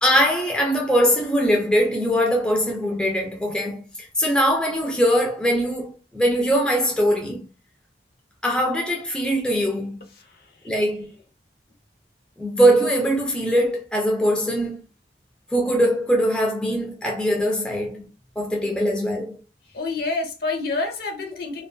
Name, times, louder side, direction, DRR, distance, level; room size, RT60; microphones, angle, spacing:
voice 1, 0.0-7.4 8.4-10.0 10.7-11.1 12.4-14.8 15.5-18.1 18.4-19.4, equal, 5° left, 0.4 m, -21 dB
voice 2, 10.2-10.5 19.7-21.7, left 3 dB, 55° left, 0.6 m, -28 dB
2.2 x 2.1 x 2.5 m
head